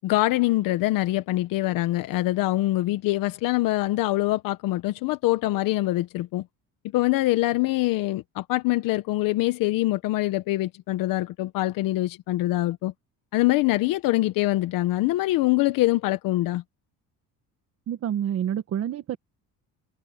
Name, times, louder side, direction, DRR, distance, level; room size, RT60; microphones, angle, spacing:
voice 1, 0.0-6.4 6.9-12.9 13.3-16.6, left 17 dB, 70° left, 1.0 m, -24 dB
voice 2, 17.9-19.2, right 10 dB, 45° right, 1.4 m, -28 dB
cardioid pair, 160°, 34 cm